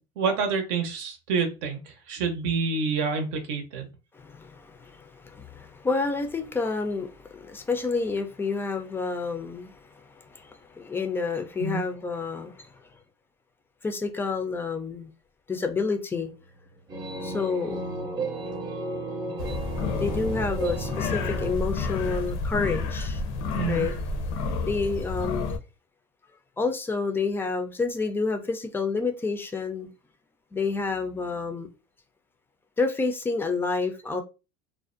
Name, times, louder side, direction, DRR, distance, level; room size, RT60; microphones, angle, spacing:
voice 1, 0.2-3.9 11.6-11.8 23.5-23.9, right 5 dB, 70° right, 0.7 m, -28 dB
voice 2, 4.1-12.7 13.8-15.1 15.5-16.3 17.2-17.8 20.0-23.2 23.7-24.0 24.7-25.5 26.6-29.9 30.5-31.7 32.8-34.2, left 4 dB, 15° left, 0.4 m, -29 dB
sound 1, 16.2-21.6, right 2 dB, 30° right, 0.6 m, -34 dB
sound 2, 19.4-25.6, left 3 dB, 70° left, 0.5 m, -30 dB
2.4 x 2.0 x 2.5 m
supercardioid pair, 115°, 13 cm